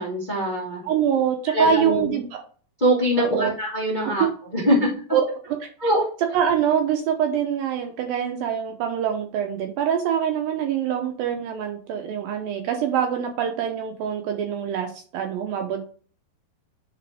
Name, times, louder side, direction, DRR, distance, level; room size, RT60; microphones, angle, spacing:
voice 1, 0.0-0.8 1.5-2.1 2.8-4.9 5.8-6.0, right 1 dB, 55° left, -5 dB, 0.5 m, -23 dB
voice 2, 0.8-2.4 3.2-3.6 4.2-4.3 5.1-5.2 5.5-5.7 6.3-15.8, right 8 dB, 75° right, 3 dB, 2.2 m, -24 dB
10.0 x 4.2 x 3.5 m, 0.42 s
omnidirectional pair, 4.9 m